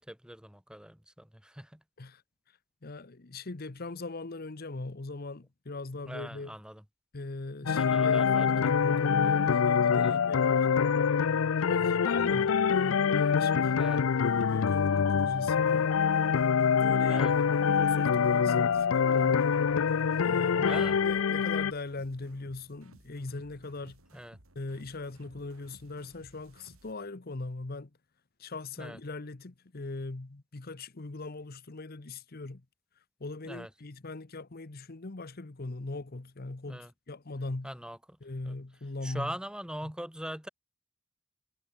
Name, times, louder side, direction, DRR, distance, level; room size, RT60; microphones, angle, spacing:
voice 1, 0.0-1.8 6.0-6.8 7.6-8.7 9.9-10.2 13.8-14.0 17.1-17.3 18.4-18.7 20.6-21.0 24.1-24.4 28.8-29.0 33.4-33.7 36.7-36.9 37.6-38.2 38.4-38.6 39.0-40.5, equal, 5° right, 2.5 m, -41 dB
voice 2, 2.8-6.5 7.1-10.7 11.6-13.8 14.3-15.9 16.8-17.2 17.6-19.5 20.2-24.0 24.5-27.9 28.4-32.6 33.2-37.7 38.2-39.3 39.8-39.9, left 2 dB, 45° left, 0.9 m, -40 dB
sound 1, 7.7-21.7, left 6 dB, 70° left, 0.5 m, -25 dB
sound 2, 13.8-26.9, right 1 dB, 80° right, 4.4 m, -59 dB
head